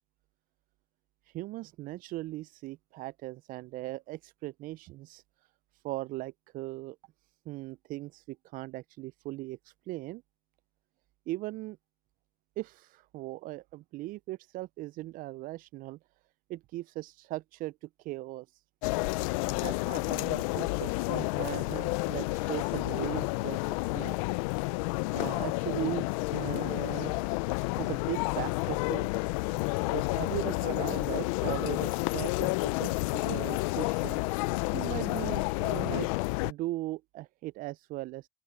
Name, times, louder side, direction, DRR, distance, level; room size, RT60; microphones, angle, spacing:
voice 1, 1.3-5.2 5.8-7.0 7.5-9.6 9.9-10.2 11.3-11.8 12.6-16.0 16.5-17.8 18.0-18.5 19.6-24.2 25.1-27.1 27.8-29.1 29.9-32.5 32.8-34.2 34.7-36.1 36.4-38.2, right 18 dB, 55° right, 0.4 m, -38 dB
sound 1, 18.8-36.5, left 25 dB, 80° left, 0.5 m, -30 dB
open air
supercardioid pair, 95°, 17 cm